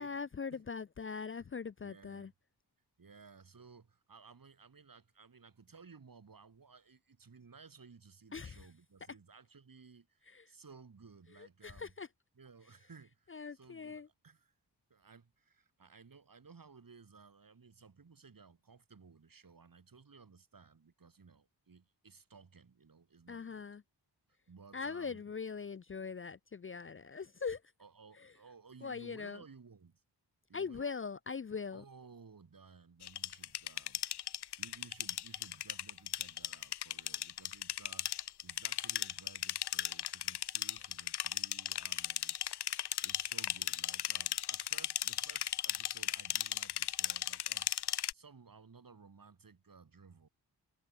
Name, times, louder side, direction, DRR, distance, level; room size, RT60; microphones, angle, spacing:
voice 1, 0.0-2.3 8.3-8.7 10.3-10.4 11.4-12.1 13.3-14.1 23.3-23.8 24.7-27.6 28.2-28.3 28.8-29.4 30.5-31.8, left 5 dB, 30° left, 0.5 m, -41 dB
voice 2, 1.8-2.3 3.0-11.9 12.4-14.5 14.9-23.7 24.5-25.2 27.8-30.0 30.5-30.9 31.7-47.7 48.1-50.3, right 5 dB, 55° right, 5.4 m, -58 dB
sound 1, 33.0-48.1, left 11 dB, 80° left, 0.7 m, -36 dB
cardioid pair, 70°, 40 cm